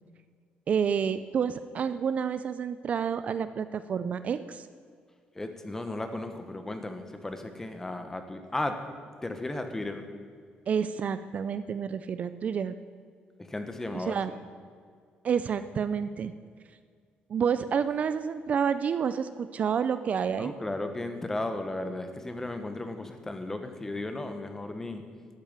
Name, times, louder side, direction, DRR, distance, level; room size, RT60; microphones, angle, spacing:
voice 1, 0.7-4.7 10.7-12.7 13.9-14.3 15.2-16.3 17.3-20.5, right 7 dB, 45° right, 12 dB, 0.5 m, -29 dB
voice 2, 5.3-8.8 9.2-10.0 13.4-14.2 20.4-25.0, left 2 dB, 10° left, 7 dB, 1.1 m, -35 dB
12.5 x 8.8 x 7.3 m, 2.1 s
cardioid pair, 145°, 3 cm